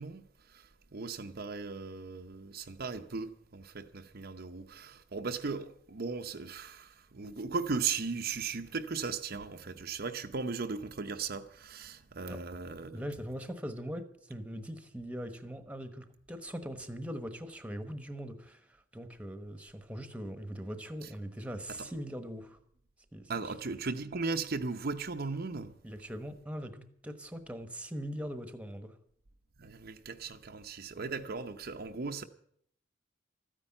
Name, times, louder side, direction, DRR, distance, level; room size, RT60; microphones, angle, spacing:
voice 1, 0.0-13.0 21.0-21.1 21.7-21.9 23.3-25.7 29.6-32.2, right 4 dB, 50° right, 0.7 m, -37 dB
voice 2, 12.9-18.6 18.9-22.6 23.1-23.3 25.8-28.9, equal, 5° right, 1.2 m, -41 dB
13.5 x 9.9 x 8.8 m
head